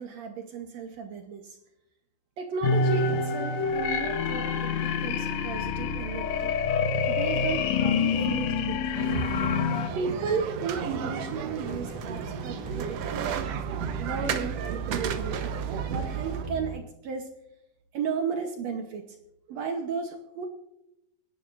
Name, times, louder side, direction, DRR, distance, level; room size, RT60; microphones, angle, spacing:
voice 1, 0.0-1.6 2.4-6.5 7.1-8.8 9.9-13.6 14.0-15.5 15.9-17.3 17.9-19.2 19.5-20.5, right 5 dB, 70° right, 5 dB, 1.6 m, -34 dB
sound 1, 2.6-9.9, left 5 dB, 75° left, 1.6 m, -27 dB
sound 2, 8.9-16.4, right 6 dB, 90° right, 1.4 m, -33 dB
sound 3, 10.6-16.8, right 8 dB, 15° right, 3.7 m, -38 dB
27.0 x 11.0 x 2.5 m, 0.86 s
omnidirectional pair, 4.3 m